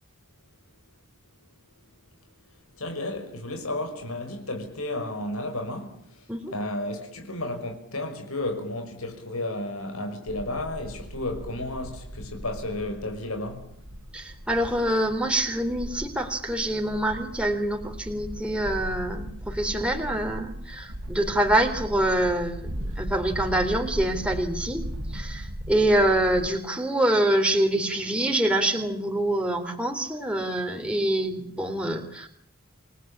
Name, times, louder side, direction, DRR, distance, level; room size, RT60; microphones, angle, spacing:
voice 1, 2.8-6.2 6.5-13.7, left 1 dB, 85° left, 5.8 m, -32 dB
sound 1, 10.3-26.5, equal, 85° right, 4.3 m, -37 dB
voice 2, 14.1-24.8 25.1-32.3, right 1 dB, 5° right, 3.3 m, -25 dB
29.0 x 19.5 x 8.8 m
head